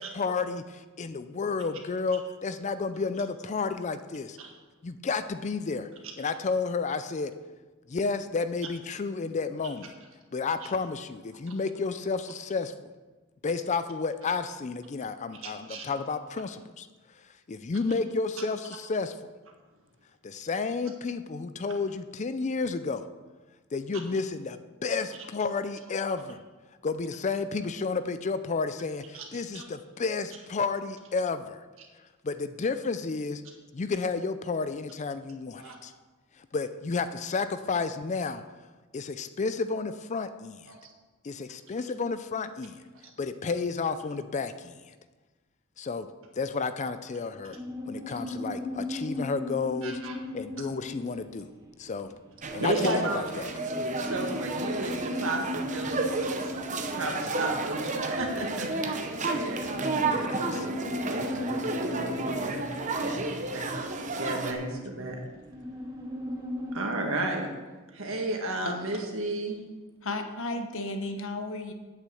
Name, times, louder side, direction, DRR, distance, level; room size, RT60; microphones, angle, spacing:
voice 1, 0.0-4.4 4.8-5.9 6.2-7.3 7.9-9.9 10.3-12.7 13.4-16.9 17.5-19.2 20.2-23.1 23.7-26.4 26.8-31.6 32.2-33.4 33.7-35.9 36.4-38.4 38.9-40.7 41.2-42.8 43.2-44.9 45.8-46.1 46.4-47.6 47.9-50.0 50.3-51.5 51.8-52.1 52.5-53.5 60.1-60.7, left 4 dB, 35° left, 11 dB, 0.4 m, -31 dB
voice 2, 15.4-15.9 29.1-29.2 29.5-29.7 35.6-35.8 40.7-40.9 49.8-50.2 52.6-53.3 54.0-59.1 59.3-60.3 61.0-63.7 64.2-65.2 66.7-67.5 67.9-69.6, right 2 dB, 65° right, 1 dB, 1.9 m, -34 dB
sound 1, 47.4-66.8, left 2 dB, 15° right, 1.2 m, -38 dB
sound 2, 52.4-64.5, right 3 dB, 35° right, 0.9 m, -32 dB
voice 3, 70.0-71.7, left 2 dB, 65° left, 6 dB, 1.1 m, -33 dB
8.3 x 6.6 x 7.8 m, 1.3 s
head